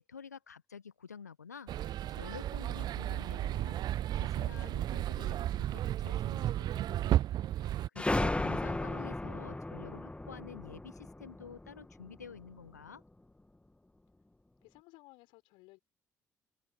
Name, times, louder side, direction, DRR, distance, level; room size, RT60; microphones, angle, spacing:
voice 1, 0.0-7.2 7.6-13.0, left 6 dB, 85° left, 1.3 m, -50 dB
sound 1, 1.7-7.9, right 12 dB, 50° right, 0.4 m, -33 dB
sound 2, 8.0-12.4, left 2 dB, 15° left, 2.3 m, -35 dB
voice 2, 14.6-15.8, left 23 dB, 65° left, 6.1 m, -58 dB
open air
figure-of-eight pair, 45°, 9 cm